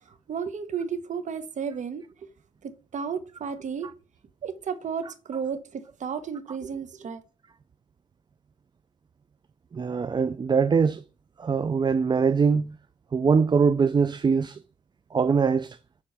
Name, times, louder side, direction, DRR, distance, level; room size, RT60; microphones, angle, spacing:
voice 1, 0.3-2.0 2.6-3.9 4.4-7.2, right 6 dB, 60° right, 1.1 m, -33 dB
voice 2, 9.7-11.0 11.4-12.8 13.1-14.6 15.1-15.8, right 5 dB, 30° right, 0.5 m, -22 dB
6.7 x 4.2 x 5.7 m
cardioid pair, 80°, 14 cm